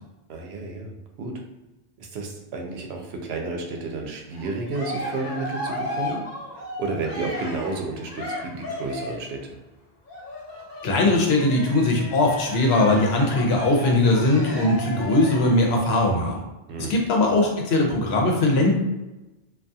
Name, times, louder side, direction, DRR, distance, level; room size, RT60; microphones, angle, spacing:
voice 1, 0.3-1.4 2.0-6.2 6.8-9.6 16.7-17.0, right 3 dB, 85° right, 2 dB, 0.8 m, -31 dB
Cheering, 4.3-9.3 10.1-15.6, left 1 dB, 55° left, 1.0 m, -34 dB
voice 2, 10.8-16.4 16.9-18.7, left 2 dB, 80° left, 0 dB, 0.9 m, -20 dB
2.3 x 2.3 x 2.6 m, 1.0 s
omnidirectional pair, 1.0 m